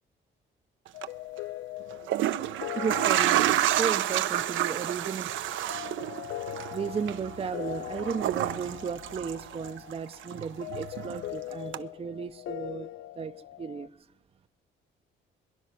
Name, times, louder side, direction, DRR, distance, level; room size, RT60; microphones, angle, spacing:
sound 1, 0.9-13.9, left 15 dB, 80° left, 0.5 m, -41 dB
sound 2, 0.9-1.1 1.9-9.9 10.2-11.3 11.7-11.8, right 13 dB, 75° right, 0.6 m, -29 dB
voice 1, 2.8-5.3 6.3-12.9 13.2-13.3 13.6-13.9, right 6 dB, 30° right, 0.5 m, -34 dB
22.5 x 11.0 x 5.9 m
cardioid pair, 90°, 20 cm